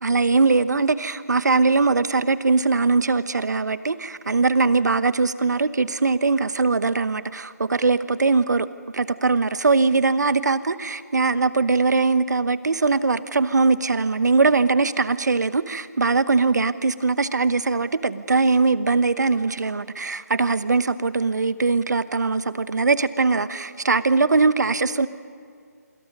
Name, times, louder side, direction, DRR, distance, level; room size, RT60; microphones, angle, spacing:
voice 1, 0.0-8.7 8.9-25.1, right 4 dB, 75° right, 15 dB, 1.1 m, -21 dB
27.5 x 25.0 x 5.4 m, 2.2 s
figure-of-eight pair, 160°, 10 cm